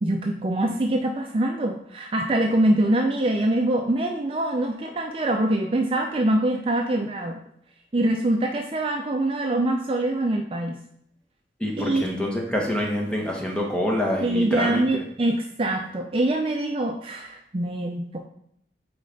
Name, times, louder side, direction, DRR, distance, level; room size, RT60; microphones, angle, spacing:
voice 1, 0.0-7.4 7.9-10.8 11.8-12.2 14.2-18.2, right 1 dB, 30° right, 2 dB, 0.4 m, -24 dB
voice 2, 11.6-14.8, left 1 dB, 5° left, -1 dB, 1.0 m, -26 dB
8.5 x 3.2 x 4.0 m, 0.70 s
head